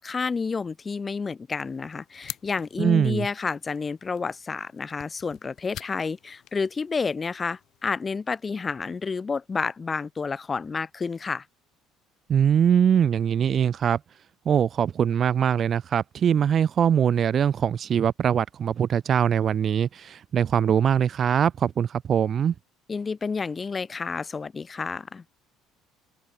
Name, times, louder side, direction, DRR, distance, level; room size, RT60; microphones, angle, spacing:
voice 1, 0.0-11.5 22.9-25.2, left 4 dB, 25° left, 3.8 m, -30 dB
sound 1, 1.5-8.0, left 13 dB, 55° left, 7.6 m, -47 dB
voice 2, 2.8-3.3 12.3-14.0 14.4-22.5, right 8 dB, 40° right, 1.2 m, -22 dB
open air
cardioid pair, 125°, 0 cm